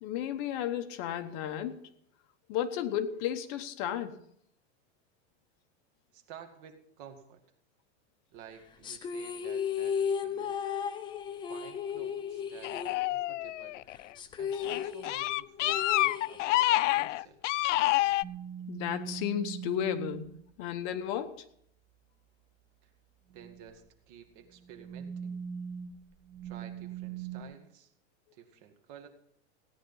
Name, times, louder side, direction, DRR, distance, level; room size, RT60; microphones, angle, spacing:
voice 1, 0.0-1.8 2.5-4.2 18.7-21.4, left 10 dB, 40° left, 9 dB, 1.0 m, -33 dB
voice 2, 6.1-7.4 8.3-10.6 11.4-13.8 14.4-17.4 22.8-22.9 23.3-25.4 26.4-27.9 28.3-29.1, right 8 dB, 45° right, 5 dB, 2.1 m, -52 dB
sound 1, 8.8-13.5 13.8-13.9 14.2-16.8, left 7 dB, 15° left, 0.5 m, -35 dB
sound 2, 12.6-14.0 14.5-18.2, left 17 dB, 85° left, 0.5 m, -28 dB
sound 3, 18.2-20.3 23.3-23.7 24.6-27.4, right 8 dB, 20° right, 1.0 m, -41 dB
16.5 x 10.0 x 5.5 m, 0.69 s
supercardioid pair, 165°, 36 cm